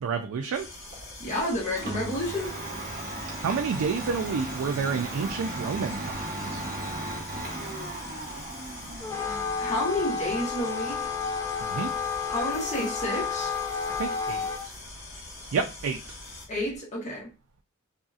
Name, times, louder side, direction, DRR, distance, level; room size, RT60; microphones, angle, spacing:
voice 1, 0.0-0.7 3.4-6.6 11.6-11.9 14.0-14.7 15.5-16.0, right 5 dB, 75° right, 0.3 m, -30 dB
sound 1, 0.5-16.5, left 2 dB, 75° left, 1.2 m, -44 dB
Domestic sounds home sounds, 0.9-16.8, right 2 dB, 40° right, 0.8 m, -38 dB
voice 2, 1.2-2.5 9.2-11.0 12.3-13.5 16.5-17.3, left 1 dB, 35° left, 1.2 m, -30 dB
Wind instrument woodwind instrument, 9.0-14.7, left 5 dB, 15° left, 0.4 m, -31 dB
2.7 x 2.7 x 2.4 m
head